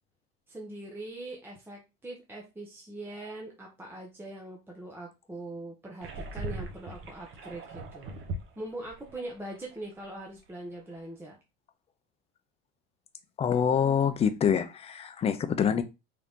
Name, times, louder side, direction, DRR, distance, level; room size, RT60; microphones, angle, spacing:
voice 1, 0.5-8.2 8.6-11.4, right 1 dB, 5° right, 0.8 m, -42 dB
sound 1, 6.0-10.0 10.4-10.5 10.9-11.0, right 2 dB, 45° right, 0.9 m, -40 dB
voice 2, 13.4-15.8, left 7 dB, 20° left, 0.5 m, -26 dB
3.8 x 2.9 x 3.5 m
cardioid pair, 140°, 30 cm